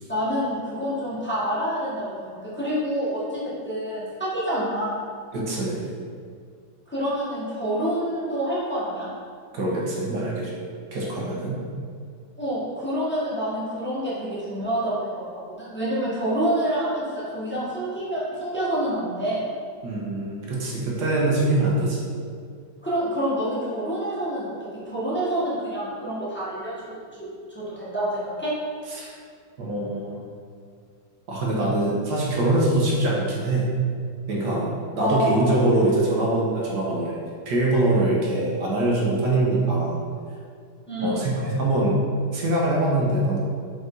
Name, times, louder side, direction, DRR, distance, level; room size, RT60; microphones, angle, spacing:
voice 1, 0.1-3.4 3.6-5.1 6.9-9.1 12.4-19.5 22.8-24.5 24.8-28.5 35.0-35.5 40.9-41.3, right 1 dB, 5° left, -9 dB, 1.3 m, -27 dB
voice 2, 5.3-5.9 9.5-10.5 10.9-11.6 19.8-22.1 28.9-29.1 29.6-30.2 31.3-33.7 34.3-37.2 37.5-39.9 41.0-42.0 42.3-43.4, right 2 dB, 75° right, -4 dB, 1.7 m, -23 dB
5.2 x 4.8 x 3.9 m, 2.2 s
omnidirectional pair, 1.8 m